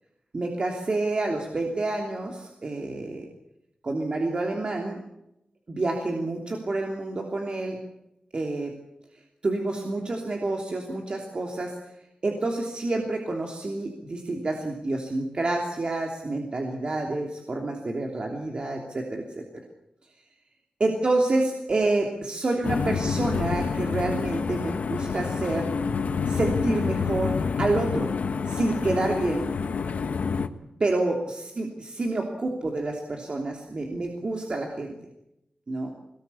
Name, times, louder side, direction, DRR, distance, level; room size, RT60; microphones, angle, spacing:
voice 1, 0.3-3.3 3.8-5.0 5.7-7.8 8.3-8.7 9.4-11.8 12.2-19.4 20.8-25.7 26.3-27.3 27.6-28.1 28.4-29.5 30.8-35.0 35.7-35.9, right 2 dB, 40° right, 2 dB, 3.1 m, -28 dB
sound 1, 22.6-30.5, left 5 dB, 75° left, 1.3 m, -28 dB
22.5 x 20.0 x 8.6 m, 0.85 s
wide cardioid pair, 120°, 2 cm